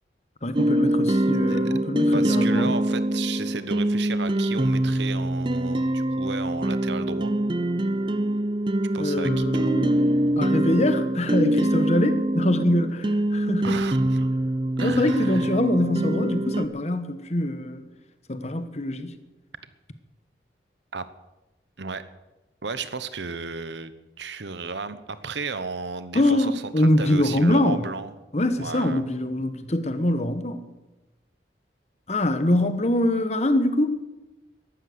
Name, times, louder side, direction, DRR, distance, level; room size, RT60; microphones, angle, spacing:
voice 1, 0.4-2.7 9.0-10.0 10.4-13.9 14.8-17.9 18.3-19.2 26.1-27.8 28.3-30.6 32.1-34.0, left 1 dB, 40° left, 10 dB, 1.2 m, -24 dB
sound 1, 0.5-16.7, right 1 dB, 25° right, 0.6 m, -24 dB
voice 2, 2.1-7.3 8.9-9.4 13.6-14.3 14.8-15.5 20.9-21.1 21.8-22.0 22.6-28.1 28.6-29.0, right 4 dB, 75° right, 13 dB, 1.0 m, -34 dB
13.5 x 12.0 x 8.0 m, 1.0 s
head